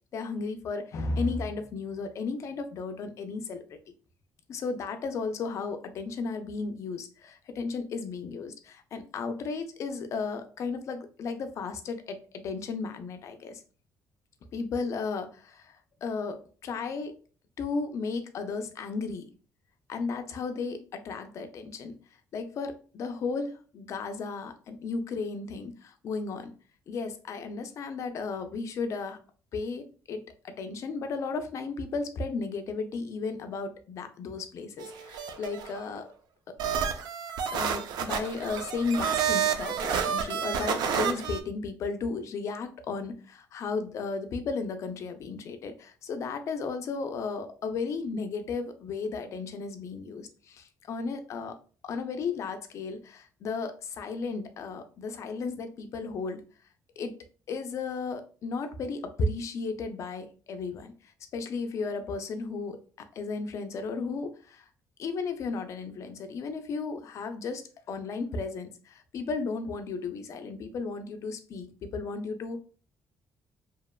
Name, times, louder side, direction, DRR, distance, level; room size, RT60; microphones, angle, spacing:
voice 1, 0.1-3.8 4.5-13.6 14.5-17.2 17.6-19.3 19.9-22.0 22.3-26.5 26.9-29.2 29.5-36.1 36.5-36.6 37.5-51.6 51.8-56.4 57.0-57.1 57.5-64.7 65.0-72.6, left 4 dB, 45° left, 8 dB, 0.4 m, -34 dB
sound 1, 34.8-35.8 36.6-41.4, right 7 dB, 80° right, 0.3 m, -29 dB
2.8 x 2.1 x 2.2 m, 0.39 s
cardioid pair, 155°, 7 cm